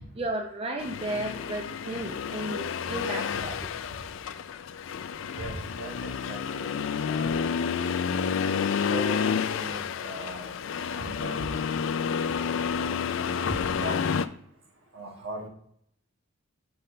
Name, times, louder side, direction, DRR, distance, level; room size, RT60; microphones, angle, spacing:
voice 1, 0.0-3.7 13.5-13.6, right 1 dB, 25° right, 3 dB, 0.6 m, -34 dB
Accelerating revving vroom, 0.8-14.3, left 6 dB, 65° left, 0.4 m, -30 dB
voice 2, 5.3-7.5 8.9-11.5 13.5-14.0 14.9-15.5, right 1 dB, 70° right, 1 dB, 1.4 m, -39 dB
6.7 x 5.6 x 3.3 m, 0.70 s
head